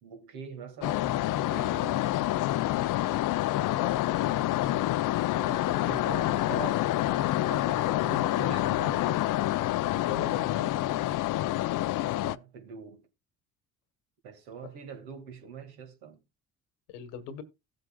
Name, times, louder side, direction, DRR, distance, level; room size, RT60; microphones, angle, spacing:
voice 1, 0.0-2.0 5.4-9.3 12.0-13.0 14.2-16.2, right 6 dB, 70° right, 2.1 m, -43 dB
sound 1, 0.8-12.4, left 15 dB, 50° left, 0.6 m, -27 dB
voice 2, 3.3-3.9 9.8-10.7 16.9-17.4, left 8 dB, 75° left, 1.4 m, -39 dB
16.0 x 7.7 x 2.3 m
hypercardioid pair, 55°, 40 cm